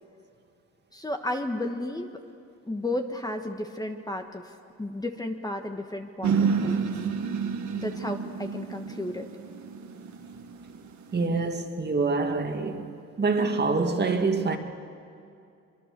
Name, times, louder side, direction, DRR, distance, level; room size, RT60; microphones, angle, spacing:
voice 1, 0.9-2.1 2.7-4.4 4.8-6.8 7.8-9.3, left 1 dB, 10° left, 1.5 m, -33 dB
sound 1, 6.2-11.3, right 6 dB, 70° right, 1.9 m, -29 dB
voice 2, 11.1-12.9 13.2-14.6, right 3 dB, 35° right, 2.1 m, -25 dB
24.0 x 24.0 x 6.9 m
cardioid pair, 90°, 30 cm